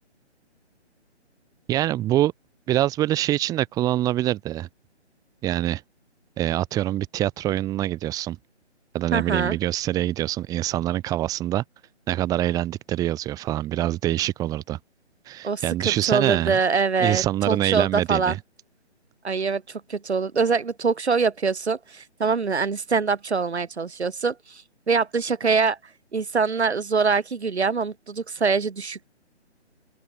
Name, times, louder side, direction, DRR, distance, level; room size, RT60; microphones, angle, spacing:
voice 1, 1.7-2.3 2.7-4.7 5.4-5.8 6.4-8.4 8.9-11.6 12.1-14.8 15.2-16.6 17.0-18.4, right 14 dB, 10° right, 1.8 m, -25 dB
voice 2, 9.1-9.6 15.4-18.4 19.2-25.8 26.1-29.1, right 5 dB, 70° right, 6.5 m, -24 dB
open air
figure-of-eight pair, 155°, 35 cm